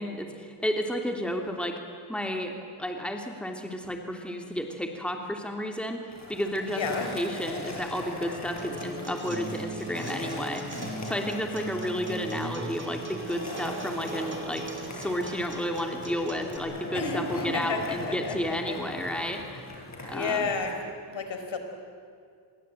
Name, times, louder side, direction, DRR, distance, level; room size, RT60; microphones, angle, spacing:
voice 1, 0.0-1.8 2.1-6.8 7.1-10.7 11.0-19.7 20.1-20.5, equal, ahead, 3 dB, 3.1 m, -32 dB
Skateboard, 6.1-20.7, left 2 dB, 35° left, 7.0 m, -40 dB
voice 2, 6.7-7.1 16.9-18.8 20.1-21.6, left 4 dB, 65° left, 6 dB, 4.5 m, -32 dB
Acoustic guitar, 8.6-16.6, right 3 dB, 25° right, 4.6 m, -38 dB
26.0 x 22.0 x 9.1 m, 2.3 s
cardioid pair, 75°, 48 cm